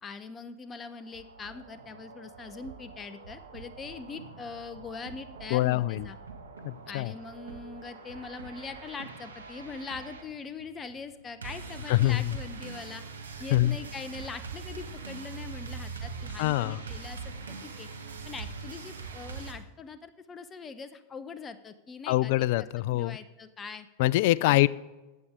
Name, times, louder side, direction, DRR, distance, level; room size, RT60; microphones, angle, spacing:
voice 1, 0.0-6.2 6.9-13.0 13.4-17.2 17.5-17.9 18.2-22.3 22.9-23.9 24.4-24.7, left 5 dB, 25° left, 12 dB, 0.8 m, -42 dB
sound 1, 0.8-19.5, right 4 dB, 85° right, 1.5 m, -43 dB
voice 2, 5.5-6.1 6.6-7.1 11.9-12.4 13.5-13.8 16.4-16.8 22.1-23.2 24.0-24.7, left 17 dB, 60° left, 21 dB, 0.4 m, -24 dB
14.5 x 8.7 x 3.7 m, 1.1 s
hypercardioid pair, 95°, 0 cm